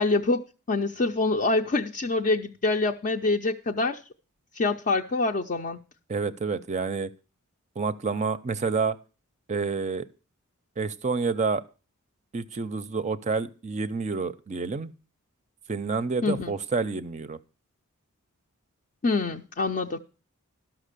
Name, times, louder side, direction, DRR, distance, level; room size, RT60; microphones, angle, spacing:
voice 1, 0.0-4.0 4.5-5.8 16.2-16.5 19.0-20.0, left 3 dB, 40° left, 0.5 m, -25 dB
voice 2, 6.1-7.1 7.8-9.0 9.5-10.1 10.8-11.6 12.3-14.9 15.7-17.4, right 4 dB, 30° right, 0.5 m, -28 dB
12.5 x 6.0 x 6.6 m
head